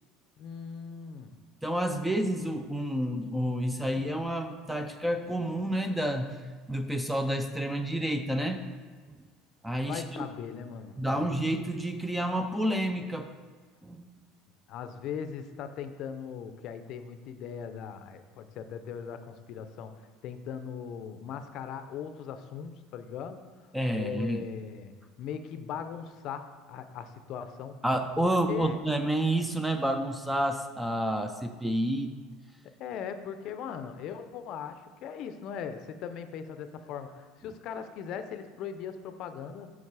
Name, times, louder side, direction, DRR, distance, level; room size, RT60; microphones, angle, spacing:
voice 1, 0.4-1.3 9.8-11.3 14.7-23.4 23.9-24.9 25.2-27.8 28.2-28.8 32.8-39.7, left 7 dB, 45° left, 9 dB, 0.5 m, -39 dB
voice 2, 1.6-6.4 6.7-8.6 9.1-9.2 9.6-10.3 11.0-13.3 13.8-14.1 23.7-24.5 27.8-32.1, right 1 dB, 5° right, 7 dB, 0.4 m, -29 dB
7.3 x 5.8 x 4.7 m, 1.5 s
cardioid pair, 160°, 0 cm